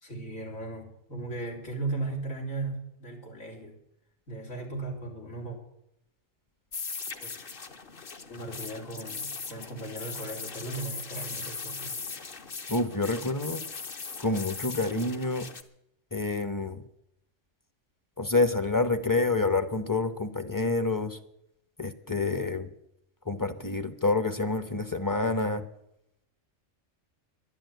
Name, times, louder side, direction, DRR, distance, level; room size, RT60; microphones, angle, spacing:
voice 1, 0.0-3.8 4.3-5.6 7.2-7.3 8.3-12.0, right 2 dB, 90° left, -1 dB, 4.0 m, -37 dB
sound 1, 6.7-15.6, left 5 dB, 45° left, 1.1 m, -39 dB
voice 2, 12.7-13.6 14.2-15.5 16.1-16.8 18.2-21.2 21.8-22.7 23.3-25.6, left 3 dB, 20° left, 10 dB, 0.8 m, -28 dB
11.5 x 11.0 x 9.2 m, 0.80 s
omnidirectional pair, 1.4 m